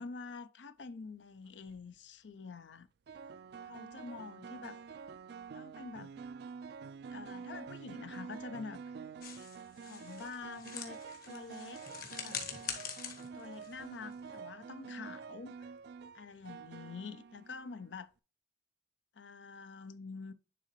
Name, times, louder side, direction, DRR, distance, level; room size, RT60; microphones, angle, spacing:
voice 1, 0.0-2.9 3.6-4.8 5.5-6.3 7.1-9.0 9.8-11.0 11.3-11.8 12.2-12.4 13.3-15.7 16.1-18.1 19.1-20.3, left 4 dB, 80° left, 0.6 m, -47 dB
sound 1, 1.5-1.8 3.1-17.9, right 6 dB, 60° right, 0.3 m, -48 dB
sound 2, 9.2-14.5, left 7 dB, 50° left, 1.4 m, -45 dB
10.0 x 3.8 x 3.1 m
head